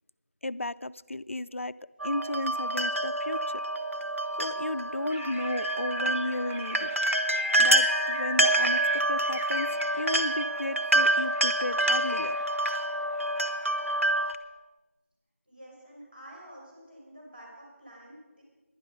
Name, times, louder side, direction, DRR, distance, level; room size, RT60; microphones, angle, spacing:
voice 1, 0.4-1.8 2.0-3.6 4.4-6.9 7.6-8.8 9.1-12.4, left 2 dB, 65° left, 13 dB, 0.4 m, -34 dB
sound 1, 2.0-14.4, right 1 dB, 70° right, 1.1 m, -27 dB
sound 2, 5.1-13.2, left 2 dB, 20° left, 0.8 m, -41 dB
voice 2, 15.5-18.4, right 1 dB, 40° right, -3 dB, 5.6 m, -49 dB
16.5 x 11.0 x 5.4 m, 1.2 s
figure-of-eight pair, 180°, 8 cm